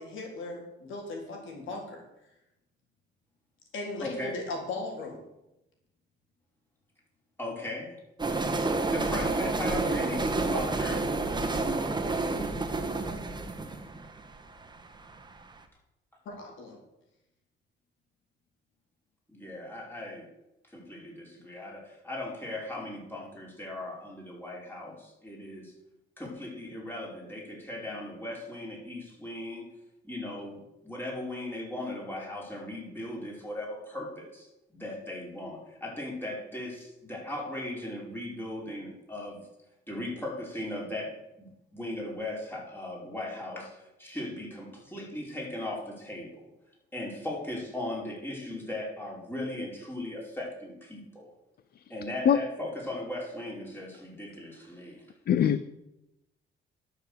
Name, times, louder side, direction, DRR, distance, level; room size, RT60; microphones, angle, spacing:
voice 1, 0.0-2.0 3.7-5.2 16.2-16.8, left 2 dB, 75° left, 0 dB, 4.1 m, -37 dB
voice 2, 4.0-4.3 7.4-8.0 8.9-11.0 19.3-20.3 20.6-25.7 26.2-29.7 30.0-39.4 39.9-46.5 46.9-51.3 51.9-55.1, left 1 dB, 10° left, -2 dB, 5.1 m, -38 dB
sound 1, 8.2-15.2, right 3 dB, 20° right, 1.7 m, -29 dB
voice 3, 55.3-55.6, left 9 dB, 50° left, 14 dB, 0.6 m, -22 dB
11.5 x 6.8 x 8.2 m, 0.90 s
cardioid pair, 90°, 20 cm